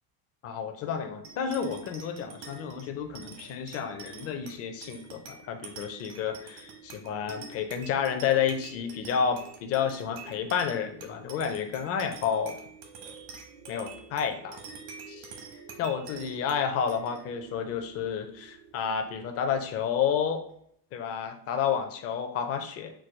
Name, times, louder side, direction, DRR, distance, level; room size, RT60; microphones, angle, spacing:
voice 1, 0.4-12.5 13.7-14.6 15.1-15.3 15.8-20.4 20.9-22.9, left 7 dB, 30° left, 6 dB, 0.5 m, -30 dB
sound 1, 1.2-20.1, right 4 dB, 70° right, 1.3 m, -47 dB
4.7 x 2.3 x 4.6 m, 0.67 s
supercardioid pair, 140°, 48 cm